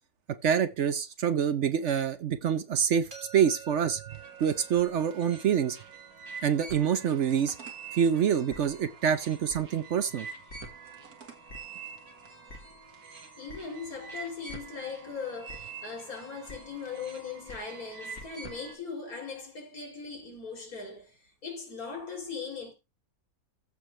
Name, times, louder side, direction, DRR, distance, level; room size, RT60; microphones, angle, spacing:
voice 1, 0.4-4.0 4.4-5.8 6.4-7.5 7.9-10.3, right 8 dB, 60° right, 0.9 m, -26 dB
sound 1, 3.1-8.9, right 7 dB, 35° right, 3.0 m, -51 dB
sound 2, 4.1-18.7, right 5 dB, 85° right, 2.1 m, -46 dB
sound 3, 8.5-8.6 9.5-9.6 10.5-10.6 11.5-11.6 12.5-12.6 13.5-13.6 14.5-14.6 15.5-15.6 16.5-16.6 17.5-17.6 18.1-18.2, left 1 dB, 50° left, 2.1 m, -44 dB
voice 2, 13.4-22.7, left 5 dB, 75° left, 3.8 m, -39 dB
14.5 x 6.3 x 3.2 m
omnidirectional pair, 1.5 m